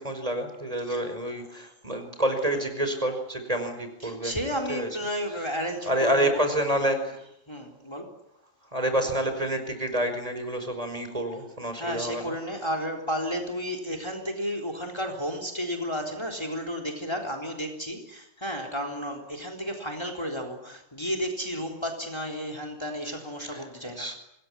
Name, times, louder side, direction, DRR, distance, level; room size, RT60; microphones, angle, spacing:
voice 1, 0.0-4.4 4.7-4.9 5.9-7.2 8.7-12.3 24.0-24.2, right 1 dB, 30° right, 7 dB, 5.4 m, -28 dB
voice 2, 4.0-6.5 7.5-8.2 11.8-24.1, equal, 20° left, 3 dB, 3.9 m, -32 dB
26.5 x 21.0 x 9.9 m, 0.79 s
omnidirectional pair, 1.3 m